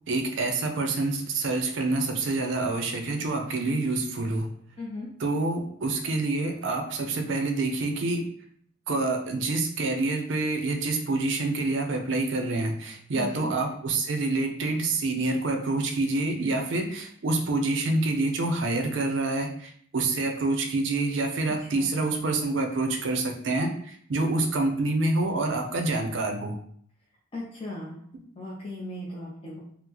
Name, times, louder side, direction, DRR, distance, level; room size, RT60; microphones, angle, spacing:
voice 1, 0.1-4.5 5.2-8.3 8.9-23.8 24.1-26.6, right 2 dB, 65° right, 4 dB, 0.5 m, -27 dB
voice 2, 4.8-5.1 13.1-13.5 21.7-21.9 27.3-28.0 28.4-29.6, left 1 dB, 30° left, -5 dB, 0.6 m, -37 dB
3.8 x 2.0 x 2.9 m, 0.62 s
head